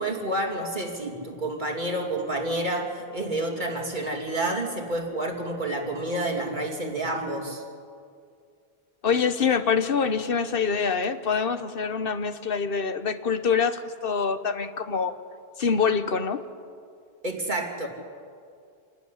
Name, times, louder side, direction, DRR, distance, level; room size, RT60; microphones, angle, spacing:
voice 1, 0.0-7.6 17.2-17.9, right 1 dB, 50° right, 0 dB, 3.0 m, -29 dB
voice 2, 9.0-15.1 15.6-16.4, left 6 dB, 65° left, 11 dB, 1.2 m, -25 dB
27.0 x 12.0 x 10.0 m, 2.3 s
omnidirectional pair, 1.0 m